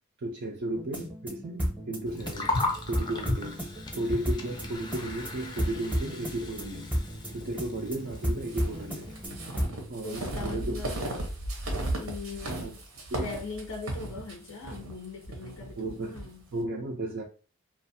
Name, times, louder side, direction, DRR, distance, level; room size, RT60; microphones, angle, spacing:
voice 1, 0.2-2.5 2.9-3.6 4.0-6.9 7.3-9.1 9.9-11.1 12.5-12.7 13.1-13.3 15.8-16.2 16.5-17.2, right 1 dB, 55° right, 0.4 m, -34 dB
sound 1, 0.7-9.9, equal, 5° right, 0.7 m, -34 dB
Gurgling, 2.1-9.3, left 2 dB, 20° left, 0.4 m, -36 dB
sound 2, 8.4-16.3, right 1 dB, 80° right, 0.8 m, -36 dB
voice 2, 10.0-11.1 11.9-12.8 13.2-16.4, left 4 dB, 90° left, 0.5 m, -40 dB
2.5 x 2.4 x 2.6 m
head